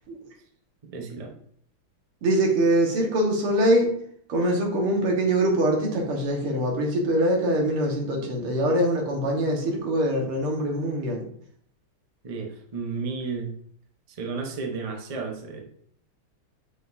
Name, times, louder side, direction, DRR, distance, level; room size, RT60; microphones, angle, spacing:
voice 1, 0.8-1.3 12.2-13.5 14.1-15.6, right 4 dB, 65° right, 2 dB, 0.3 m, -33 dB
voice 2, 2.2-3.9 4.3-11.2, right 1 dB, 85° right, 0 dB, 2.4 m, -23 dB
7.5 x 6.4 x 2.7 m, 0.63 s
omnidirectional pair, 2.4 m